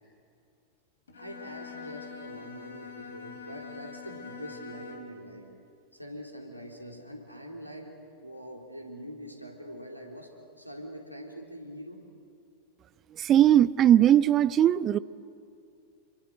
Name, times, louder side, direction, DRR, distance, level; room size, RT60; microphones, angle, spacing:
Bowed string instrument, 1.1-5.3, left 6 dB, 65° left, 3.4 m, -44 dB
voice 1, 1.2-5.5 5.9-7.9 8.2-10.3 10.6-12.0, equal, 90° left, 3.8 m, -43 dB
voice 2, 13.2-15.0, right 11 dB, 30° right, 0.6 m, -20 dB
28.0 x 24.5 x 8.0 m
figure-of-eight pair, 90°, 0 cm